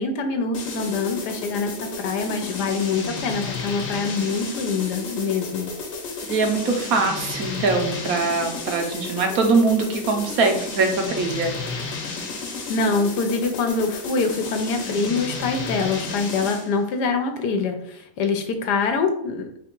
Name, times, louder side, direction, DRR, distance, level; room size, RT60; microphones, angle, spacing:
voice 1, 0.0-5.7 12.7-19.6, left 4 dB, 75° left, 6 dB, 1.2 m, -25 dB
sound 1, 0.5-16.8, left 4 dB, 55° left, 1.1 m, -32 dB
voice 2, 6.3-11.5, right 3 dB, 65° right, 4 dB, 1.1 m, -22 dB
4.1 x 2.4 x 4.4 m, 0.74 s
omnidirectional pair, 1.8 m